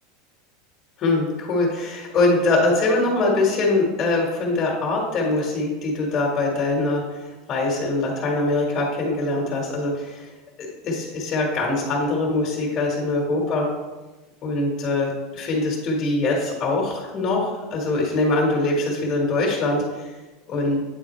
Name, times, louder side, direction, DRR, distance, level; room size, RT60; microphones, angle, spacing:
voice 1, 1.0-10.3 10.6-13.6 14.4-20.1 20.5-20.8, left 2 dB, 35° left, -3 dB, 1.5 m, -23 dB
8.6 x 3.7 x 3.2 m, 1.1 s
supercardioid pair, 130°, 0 cm